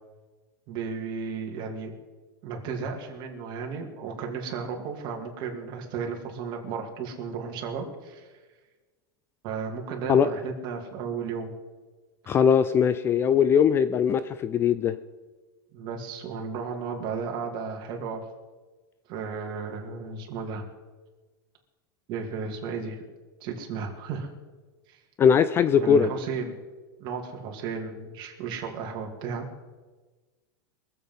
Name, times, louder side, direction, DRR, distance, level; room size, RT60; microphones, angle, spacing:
voice 1, 0.7-1.9 2.4-8.3 9.4-11.5 15.7-18.2 19.1-20.6 22.1-23.0 23.4-24.3 24.9-25.0 25.8-26.6 27.0-29.5, right 5 dB, 40° right, 1 dB, 2.6 m, -34 dB
voice 2, 12.3-14.9 25.2-26.1, left 7 dB, 20° left, 14 dB, 0.4 m, -20 dB
23.0 x 7.9 x 5.5 m, 1.3 s
supercardioid pair, 155°, 12 cm